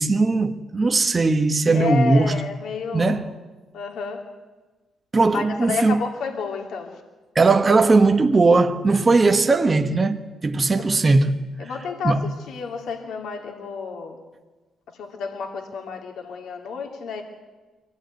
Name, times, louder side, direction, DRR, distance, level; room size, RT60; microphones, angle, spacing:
voice 1, 0.0-2.4 2.9-3.3 5.1-6.0 7.3-11.4 12.0-12.3, right 3 dB, 25° right, 1.4 m, -19 dB
voice 2, 1.7-3.2 3.7-4.2 5.3-7.0 10.8-10.9 11.6-14.2 14.9-17.2, left 5 dB, 75° left, 2.7 m, -30 dB
23.5 x 17.0 x 9.5 m
cardioid pair, 90°, 0 cm